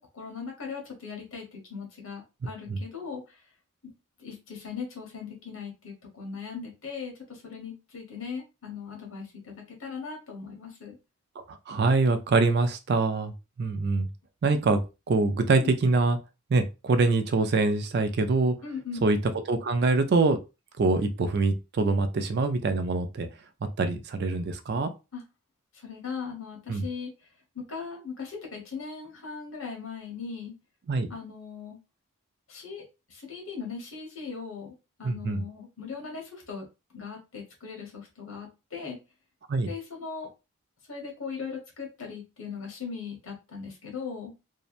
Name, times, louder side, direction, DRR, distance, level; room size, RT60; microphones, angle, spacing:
voice 1, 0.0-3.4 4.2-11.0 15.6-15.7 18.6-19.0 25.1-25.2 25.8-27.1 27.5-30.5 31.1-31.8 32.5-36.6 36.9-39.0 39.6-40.3 40.9-44.3, left 5 dB, 70° left, 0 dB, 1.1 m, -39 dB
voice 2, 11.5-13.3 13.6-14.1 14.4-14.8 15.1-16.2 16.5-18.5 19.0-19.2 19.5-20.4 20.8-23.3 23.8-24.9 26.7-26.8 30.9-31.1 35.0-35.4 39.5-39.7, right 3 dB, 50° right, 8 dB, 0.3 m, -24 dB
2.7 x 2.1 x 2.4 m, 0.27 s
head